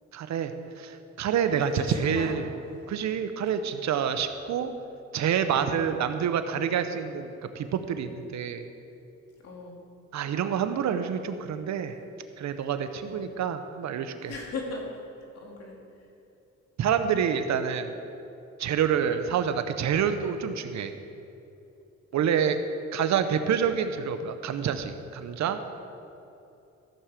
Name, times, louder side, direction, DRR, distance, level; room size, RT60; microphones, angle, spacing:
voice 1, 0.1-2.5 2.9-4.7 5.1-8.7 10.1-12.0 12.4-14.3 16.8-18.0 18.6-20.9 22.1-22.6 22.9-25.6, right 8 dB, 65° right, 9 dB, 0.8 m, -27 dB
voice 2, 1.6-2.3 5.6-5.8 9.4-9.8 13.0-13.3 14.3-14.9 15.3-15.8 22.1-22.3, left 3 dB, 55° left, 0 dB, 2.4 m, -38 dB
14.5 x 7.3 x 5.0 m, 2.8 s
cardioid pair, 90°, 30 cm